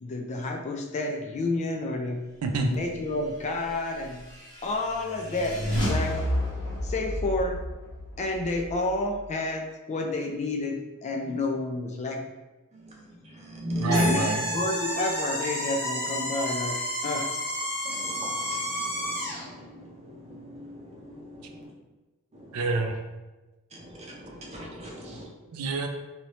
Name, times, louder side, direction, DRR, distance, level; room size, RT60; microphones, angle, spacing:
voice 1, 0.0-2.3 2.5-4.3 4.6-6.2 6.8-7.6 8.2-12.2 13.9-17.3, left 2 dB, 30° left, 2 dB, 0.3 m, -30 dB
sound 1, 3.6-9.3, equal, 60° left, 1.3 m, -32 dB
voice 2, 12.7-14.1 17.8-21.7 22.4-22.6 23.7-25.3, equal, 30° right, -2 dB, 0.7 m, -35 dB
voice 3, 13.8-14.5 22.5-23.0 25.5-25.9, right 3 dB, 80° right, 5 dB, 0.4 m, -28 dB
sound 2, 13.9-19.5, equal, 15° left, 1.0 m, -30 dB
3.0 x 2.7 x 3.0 m, 1.1 s
head